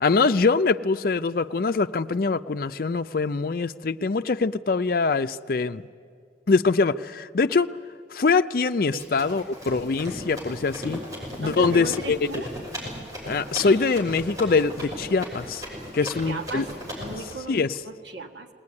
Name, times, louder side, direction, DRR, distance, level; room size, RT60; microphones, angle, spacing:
voice 1, 0.0-5.8 6.5-7.7 8.1-11.0 11.4-12.4 13.2-15.6 15.9-16.7 17.5-17.8, left 4 dB, 55° left, 10 dB, 0.5 m, -23 dB
Run, 9.0-17.3, equal, 20° right, 6.2 m, -36 dB
voice 2, 11.3-12.5 16.0-16.7 17.0-17.6 17.8-18.5, right 3 dB, 80° right, 5 dB, 1.7 m, -36 dB
20.0 x 18.5 x 9.7 m, 2.2 s
head